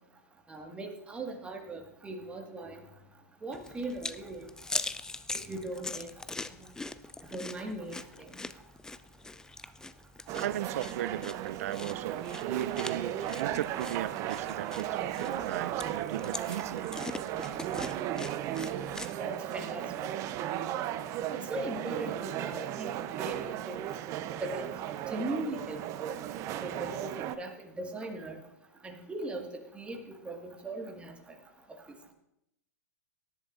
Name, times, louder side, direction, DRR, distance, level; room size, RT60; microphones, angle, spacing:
voice 1, 0.5-2.8 3.4-4.5 5.3-6.1 6.5-6.7 7.3-8.3 19.2-20.1 21.5-22.9 23.2-23.9 24.4-24.7 25.1-26.2 26.6-28.4 28.8-29.5 29.7-31.1, right 2 dB, 15° right, 1.8 m, -39 dB
sound 1, 3.5-19.1, left 3 dB, 5° left, 0.4 m, -42 dB
sound 2, 10.3-27.3, right 11 dB, 35° right, 0.7 m, -35 dB
voice 2, 10.4-16.9, right 12 dB, 65° right, 0.4 m, -36 dB
18.0 x 11.0 x 2.6 m
hypercardioid pair, 105°, 9 cm